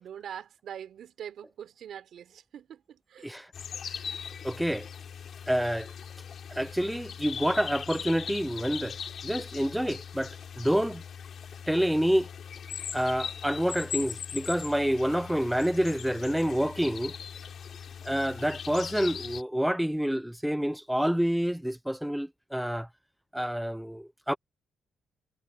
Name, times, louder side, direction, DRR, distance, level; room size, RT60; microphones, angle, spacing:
voice 1, 0.0-3.4, right 9 dB, 65° right, 4.4 m, -43 dB
sound 1, 3.5-19.4, left 7 dB, 55° left, 4.6 m, -40 dB
voice 2, 4.4-4.9 5.5-5.9 6.5-9.0 9.2-11.0 11.7-12.3 12.9-17.2 18.0-22.9 23.3-24.4, equal, 5° right, 0.6 m, -28 dB
cardioid pair, 90°, 0 cm